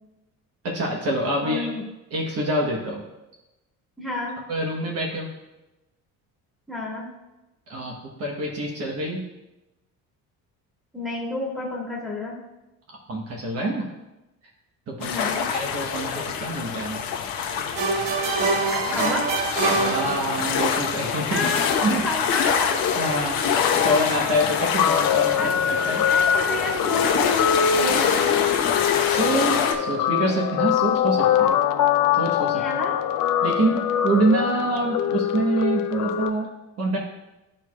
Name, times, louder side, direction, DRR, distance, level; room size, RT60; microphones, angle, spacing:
voice 1, 0.6-1.7 2.1-3.0 4.5-5.3 7.7-9.2 13.1-13.9 14.9-15.1 15.5-17.0 19.7-21.6 21.8-22.0 22.3-22.4 23.0-26.0 29.0-31.5 32.1-32.6 33.4-36.5 36.8-37.0, right 1 dB, 45° right, -1 dB, 1.2 m, -26 dB
voice 2, 1.4-1.8 4.0-4.4 6.7-7.1 10.9-12.3 15.0-15.5 18.9-19.3 21.2-22.9 25.4-25.6 26.1-28.3 32.5-33.0, left 2 dB, ahead, -4 dB, 1.8 m, -30 dB
sound 1, 15.0-29.7, left 7 dB, 80° left, 1.1 m, -25 dB
sound 2, 17.8-20.7, right 4 dB, 70° right, 0.9 m, -25 dB
Guitar, 23.6-36.3, left 9 dB, 65° left, 0.6 m, -23 dB
13.5 x 4.6 x 2.4 m, 0.99 s
cardioid pair, 155°, 35 cm